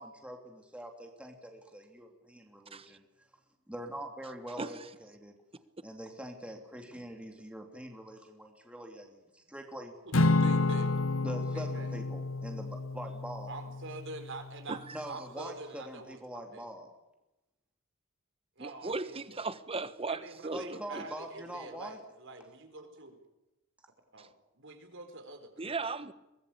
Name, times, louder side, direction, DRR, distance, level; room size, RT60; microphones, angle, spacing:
voice 1, 0.0-3.0 3.7-5.3 5.8-9.9 11.2-13.5 14.9-16.9 20.5-22.0, right 1 dB, 5° right, 2.9 m, -44 dB
voice 2, 4.6-4.9 14.7-15.0 18.6-21.1 24.2-24.3 25.6-26.1, right 3 dB, 25° right, 1.3 m, -37 dB
voice 3, 10.0-11.0 11.3-11.9 13.5-14.8 15.1-16.7 18.6-19.4 20.1-23.2 24.1-24.3 24.5-25.8, right 3 dB, 60° right, 4.7 m, -46 dB
Acoustic guitar / Strum, 10.1-14.6, left 2 dB, 65° left, 1.1 m, -30 dB
23.5 x 20.0 x 8.6 m
head